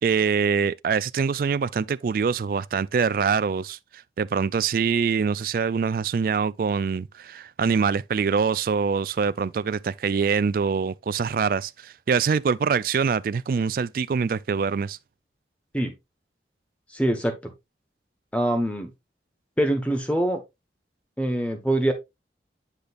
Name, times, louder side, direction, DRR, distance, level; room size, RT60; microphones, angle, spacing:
voice 1, 0.0-15.0, right 6 dB, 50° right, 0.3 m, -24 dB
voice 2, 16.9-17.5 18.3-18.9 19.6-20.4 21.2-21.9, right 1 dB, 5° left, 1.2 m, -24 dB
9.9 x 5.1 x 2.5 m
head